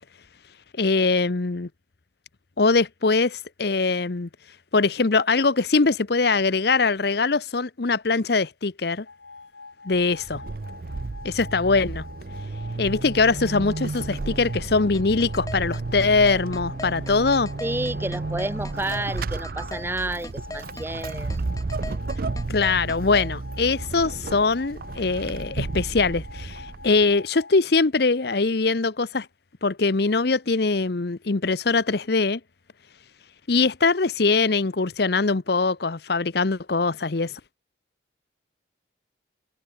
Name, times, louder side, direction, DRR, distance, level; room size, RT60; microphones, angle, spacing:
voice 1, 0.8-1.7 2.6-4.3 4.7-9.1 9.8-10.4 11.2-12.0 12.8-17.5 22.5-29.3 29.6-32.4 33.5-37.4, left 4 dB, 55° left, 0.8 m, -22 dB
sound 1, 9.1-27.6, left 4 dB, 75° left, 2.8 m, -45 dB
Vehicle / Accelerating revving vroom / Squeak, 9.9-27.1, right 3 dB, 50° right, 0.5 m, -32 dB
sound 2, 14.9-23.3, left 2 dB, 20° left, 1.0 m, -38 dB
voice 2, 17.6-21.4, right 1 dB, 10° right, 1.1 m, -30 dB
head